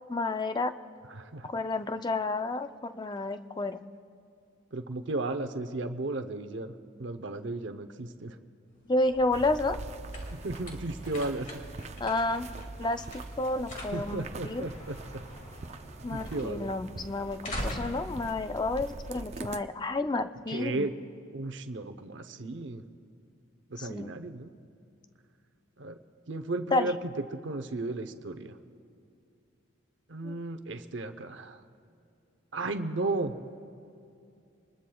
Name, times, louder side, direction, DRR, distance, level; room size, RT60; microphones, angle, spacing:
voice 1, 0.1-0.7 1.4-3.8 8.9-9.8 12.0-12.5 12.8-14.7 16.0-20.9 23.8-24.1 26.7-26.9 30.2-30.4, left 2 dB, 20° left, 9 dB, 0.4 m, -30 dB
voice 2, 1.2-1.5 4.7-6.7 7.0-8.3 10.3-11.5 13.9-15.0 16.1-16.7 20.5-20.9 21.3-22.8 23.7-24.5 25.8-25.9 26.3-27.0 27.3-28.5 30.1-31.6 32.5-33.3, right 2 dB, 60° right, 8 dB, 0.7 m, -34 dB
sound 1, 8.7-19.5, equal, 40° left, 2.2 m, -44 dB
sound 2, 9.3-19.6, right 3 dB, 35° right, 0.5 m, -43 dB
26.0 x 20.5 x 2.3 m, 2.5 s
head